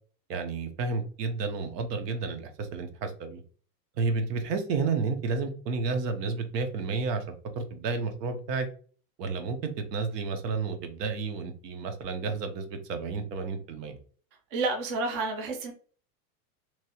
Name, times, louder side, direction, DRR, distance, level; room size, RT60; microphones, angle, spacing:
voice 1, 0.3-3.4 4.0-7.2 7.5-8.7 9.2-14.0, right 4 dB, 85° right, 7 dB, 0.8 m, -31 dB
voice 2, 14.5-15.7, right 3 dB, 35° right, 3 dB, 0.4 m, -30 dB
3.0 x 2.3 x 2.8 m, 0.42 s
supercardioid pair, 175°, 47 cm